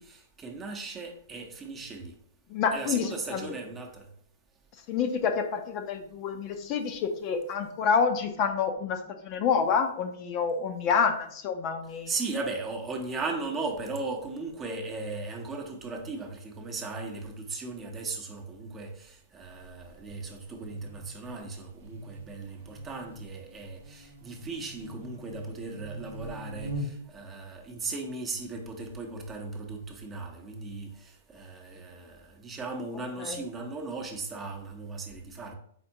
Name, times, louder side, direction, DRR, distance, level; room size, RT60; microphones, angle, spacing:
voice 1, 0.0-2.1 2.7-4.1 12.1-35.5, right 3 dB, 20° right, 0.8 m, -37 dB
voice 2, 2.5-3.5 4.9-12.1 33.2-33.4, left 6 dB, 35° left, 0.6 m, -28 dB
Buzz, 19.4-27.2, equal, 75° right, 0.8 m, -44 dB
4.3 x 4.2 x 2.8 m
hypercardioid pair, 115°, 0 cm